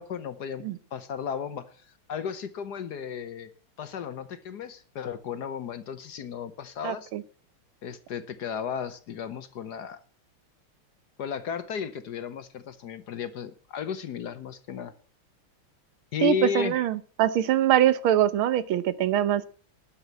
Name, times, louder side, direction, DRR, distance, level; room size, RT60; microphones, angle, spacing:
voice 1, 0.0-3.5 3.8-7.1 7.8-10.0 11.2-14.9 16.1-16.8, left 7 dB, 60° left, 12 dB, 1.3 m, -34 dB
voice 2, 6.8-7.2 16.2-19.4, right 11 dB, 80° right, 15 dB, 1.7 m, -23 dB
11.5 x 7.3 x 8.0 m, 0.41 s
omnidirectional pair, 2.3 m